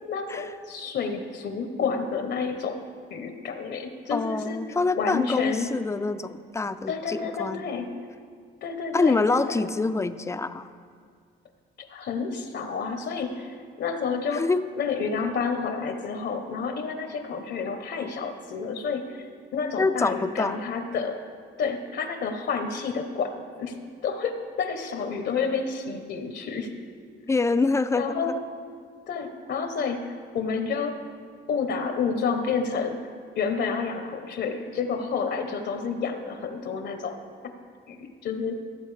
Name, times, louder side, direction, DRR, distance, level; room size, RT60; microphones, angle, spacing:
voice 1, 0.1-2.8 3.1-5.7 6.9-7.9 8.6-9.7 11.8-14.5 14.8-21.2 21.6-26.7 28.0-28.3 29.1-31.0 31.5-37.2 37.9-38.6, left 5 dB, 60° left, 7 dB, 0.8 m, -30 dB
voice 2, 4.1-7.7 8.9-10.7 14.3-14.6 19.8-20.6 27.3-28.2, left 3 dB, 15° left, 11 dB, 0.4 m, -25 dB
14.0 x 7.6 x 3.2 m, 2.1 s
cardioid pair, 90°, 20 cm